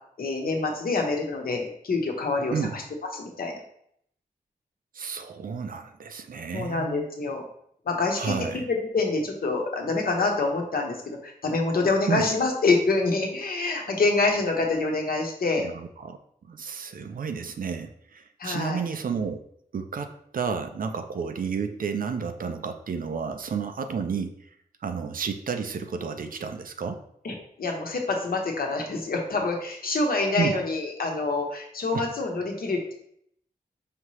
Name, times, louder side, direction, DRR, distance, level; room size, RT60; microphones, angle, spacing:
voice 1, 0.2-2.8 3.1-3.6 6.5-7.4 7.8-15.7 18.4-18.8 27.2-32.9, left 3 dB, 70° left, 1 dB, 0.8 m, -26 dB
voice 2, 4.9-7.1 8.2-8.7 12.1-12.2 15.6-16.2 16.5-19.4 19.7-24.5 24.8-27.0 30.4-30.5 31.9-32.1, right 6 dB, 65° right, 8 dB, 0.4 m, -31 dB
5.0 x 2.8 x 3.1 m, 0.69 s
wide cardioid pair, 115°, 16 cm